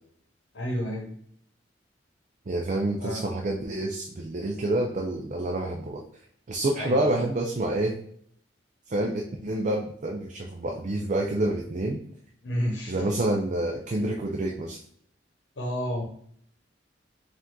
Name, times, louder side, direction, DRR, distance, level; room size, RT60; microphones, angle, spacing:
voice 1, 0.5-1.1 3.0-3.3 6.8-7.3 12.4-13.0 15.6-16.0, equal, 80° left, 1 dB, 0.9 m, -30 dB
voice 2, 2.5-6.0 6.5-7.9 8.9-12.0 12.9-14.8, right 1 dB, 45° right, 1 dB, 0.5 m, -28 dB
5.0 x 2.6 x 3.6 m, 0.66 s
head